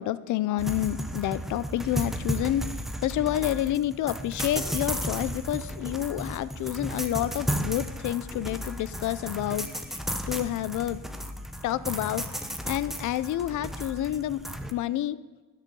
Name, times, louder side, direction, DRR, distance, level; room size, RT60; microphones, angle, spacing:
voice 1, 0.0-2.7 3.0-10.0 10.3-11.0 11.6-14.4 14.7-15.2, left 13 dB, 90° left, 17 dB, 0.6 m, -29 dB
sound 1, 0.6-14.7, equal, ahead, 0.9 m, -34 dB
19.0 x 6.7 x 5.4 m, 1.3 s
cardioid pair, 135°, 29 cm